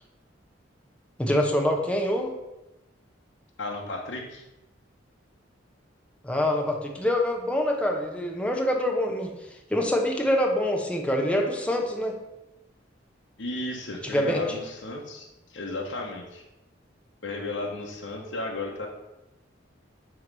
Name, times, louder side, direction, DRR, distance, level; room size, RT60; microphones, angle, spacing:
voice 1, 1.2-2.3 6.2-9.3 9.7-12.1 14.0-14.4, left 1 dB, 5° left, 1 dB, 0.9 m, -25 dB
voice 2, 3.6-4.4 13.4-16.4 17.2-18.9, left 2 dB, 75° left, -1 dB, 0.9 m, -34 dB
9.3 x 3.1 x 5.3 m, 0.97 s
head